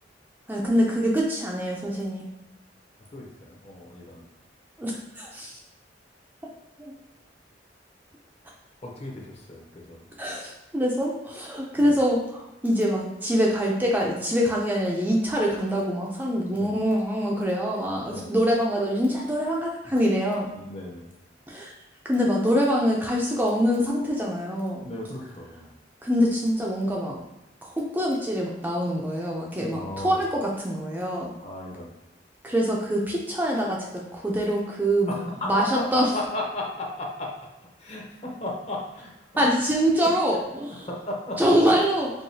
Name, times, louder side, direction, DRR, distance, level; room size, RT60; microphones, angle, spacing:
voice 1, 0.5-2.3 4.8-5.6 6.8-6.9 10.2-20.5 21.5-21.7 22.0-24.8 26.0-27.2 27.7-31.3 32.4-35.1 35.5-36.1 39.4-40.9 41.4-42.1, equal, 10° right, -3 dB, 0.4 m, -24 dB
voice 2, 3.1-4.3 8.8-10.0 11.8-12.0 16.5-16.8 18.0-18.4 20.5-21.1 24.8-25.7 29.7-30.2 31.4-31.9 35.1-39.7 40.0-40.1 40.8-41.6, left 1 dB, 35° left, -2 dB, 0.7 m, -35 dB
4.7 x 2.3 x 2.7 m, 0.91 s
head